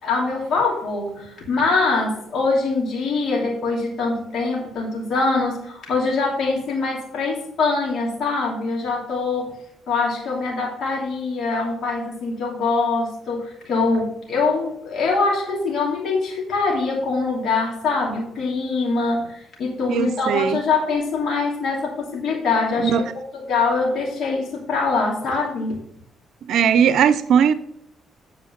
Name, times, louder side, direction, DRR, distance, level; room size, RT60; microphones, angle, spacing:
voice 1, 0.0-9.6 9.9-22.9 23.5-25.8, left 3 dB, 65° left, 2.8 m, -23 dB
voice 2, 19.9-20.6 22.8-23.1 26.5-27.5, right 8 dB, 75° right, 0.6 m, -18 dB
8.4 x 4.7 x 5.9 m
cardioid pair, 90°, 0 cm